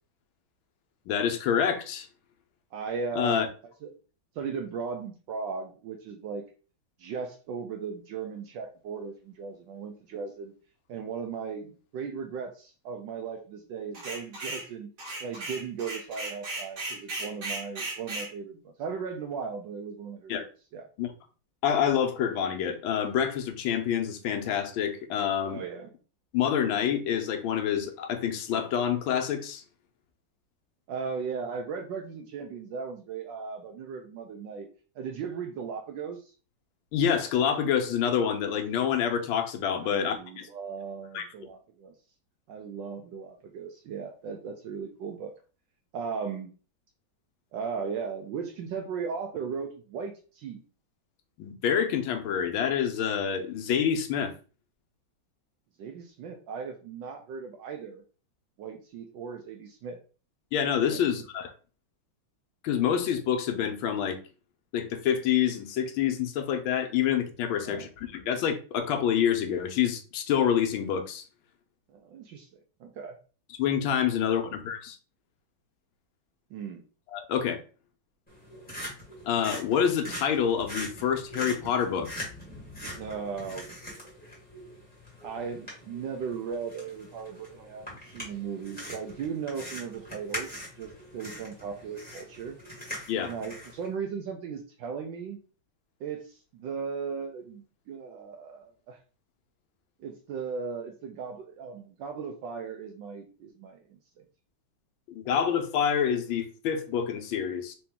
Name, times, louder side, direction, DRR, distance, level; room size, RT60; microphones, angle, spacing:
voice 1, 1.1-2.1 3.1-3.5 20.3-20.5 21.0-21.1 21.6-25.6 26.3-29.6 36.9-40.5 41.1-41.3 51.4-54.3 60.5-61.5 62.6-64.2 64.7-71.2 73.6-75.0 77.1-77.6 79.3-82.1 93.1-93.3 105.1-107.7, left 8 dB, 80° left, 1.5 m, -27 dB
voice 2, 2.7-3.9 4.4-6.4 7.0-10.5 10.9-14.9 15.2-20.3 20.7-20.9 25.5-25.9 30.9-34.7 35.0-36.3 39.8-41.9 42.5-45.3 45.9-46.5 47.5-50.6 55.8-58.0 58.6-60.0 60.9-61.2 67.5-67.9 71.9-72.5 72.8-73.2 74.4-74.6 76.5-76.8 83.0-83.7 85.2-90.5 90.8-92.6 93.2-95.4 96.0-99.0 100.0-103.8 104.2-104.3, right 6 dB, 75° right, 1.2 m, -37 dB
sound 1, 13.9-14.7 15.0-18.3, right 2 dB, 55° right, 1.7 m, -36 dB
sound 2, 78.3-93.9, equal, 5° left, 1.7 m, -42 dB
3.8 x 2.9 x 3.5 m
omnidirectional pair, 2.2 m